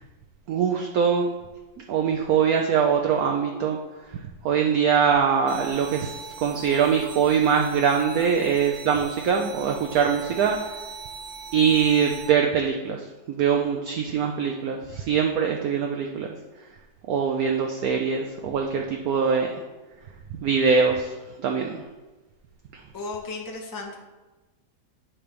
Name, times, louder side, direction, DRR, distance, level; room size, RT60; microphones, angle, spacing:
voice 1, 0.5-1.3 1.9-3.8 4.4-6.2 6.4-10.6 11.5-16.3 17.1-19.5 20.4-21.1 21.4-21.7, right 6 dB, 70° right, 2 dB, 1.0 m, -22 dB
sound 1, 5.5-12.3, right 5 dB, 85° right, 1.6 m, -41 dB
voice 2, 22.9-24.0, left 3 dB, 20° left, 0 dB, 0.5 m, -34 dB
8.7 x 3.3 x 5.2 m, 1.2 s
omnidirectional pair, 1.8 m